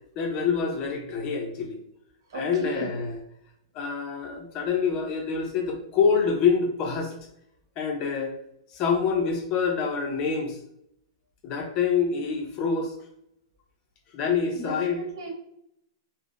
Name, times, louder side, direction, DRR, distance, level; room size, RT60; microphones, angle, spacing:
voice 1, 0.2-1.8 2.3-3.2 3.7-7.1 7.8-8.3 8.7-10.6 11.4-12.9 14.1-15.0, left 5 dB, 35° left, 3 dB, 0.5 m, -26 dB
voice 2, 2.3-2.9 14.5-15.3, right 1 dB, 75° right, 1 dB, 0.9 m, -36 dB
3.3 x 2.0 x 2.5 m, 0.76 s
hypercardioid pair, 145°, 2 cm